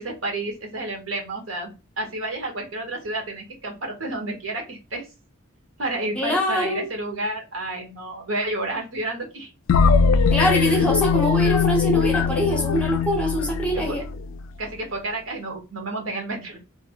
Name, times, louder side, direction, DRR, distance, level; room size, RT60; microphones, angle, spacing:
voice 1, 0.0-5.1 5.8-9.5 10.5-10.8 13.7-14.0 14.6-16.6, right 2 dB, 80° right, 1.0 m, -30 dB
voice 2, 6.1-6.9 10.3-14.0, equal, 5° left, 0.6 m, -23 dB
sound 1, 9.7-14.4, left 6 dB, 85° left, 0.3 m, -21 dB
2.5 x 2.4 x 2.8 m
head